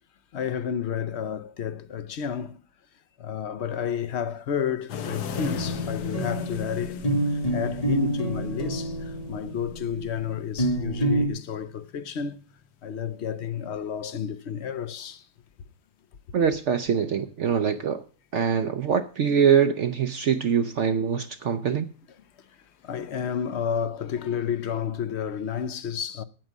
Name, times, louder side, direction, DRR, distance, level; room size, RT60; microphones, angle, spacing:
voice 1, 0.3-2.6 3.2-12.4 12.8-15.3 18.4-18.5 21.4-21.5 22.8-26.2, left 8 dB, 55° left, 0.8 m, -31 dB
sound 1, 4.9-12.7 14.3-14.7 23.1-23.2, left 7 dB, 80° left, 1.5 m, -38 dB
sound 2, 5.3-11.3, right 1 dB, 25° left, 1.2 m, -28 dB
voice 2, 16.3-18.0 18.3-21.9, right 7 dB, 60° right, 0.8 m, -23 dB
9.2 x 9.0 x 7.3 m
omnidirectional pair, 1.7 m